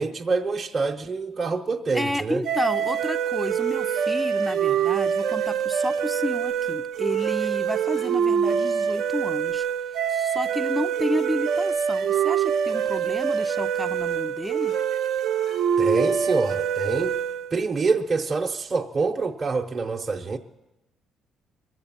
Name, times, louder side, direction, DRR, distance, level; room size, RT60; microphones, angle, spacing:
voice 1, 0.0-2.4 15.8-17.2 17.5-20.4, right 4 dB, 35° right, 0.8 m, -26 dB
voice 2, 1.9-9.7 10.1-14.7, left 1 dB, 5° left, 0.5 m, -31 dB
sound 1, 2.4-17.5, right 7 dB, 70° right, 0.6 m, -25 dB
23.0 x 8.0 x 7.3 m
cardioid pair, 100°, 0 cm